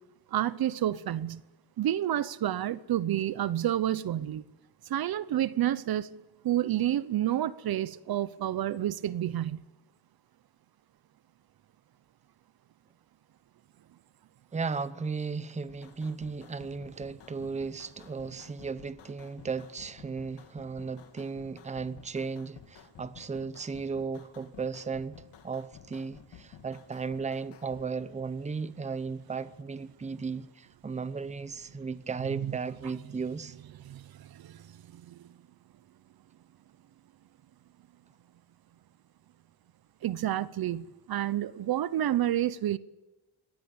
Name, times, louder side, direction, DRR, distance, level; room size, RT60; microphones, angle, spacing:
voice 1, 0.3-1.4 1.8-4.4 4.9-6.2 6.4-9.6 32.3-32.6 33.8-35.2 40.0-42.8, right 12 dB, 60° right, 0.8 m, -30 dB
voice 2, 14.5-33.6, right 5 dB, 15° right, 0.8 m, -35 dB
sound 1, 15.7-27.9, left 8 dB, 75° left, 2.3 m, -53 dB
24.0 x 18.5 x 8.7 m
cardioid pair, 145°, 42 cm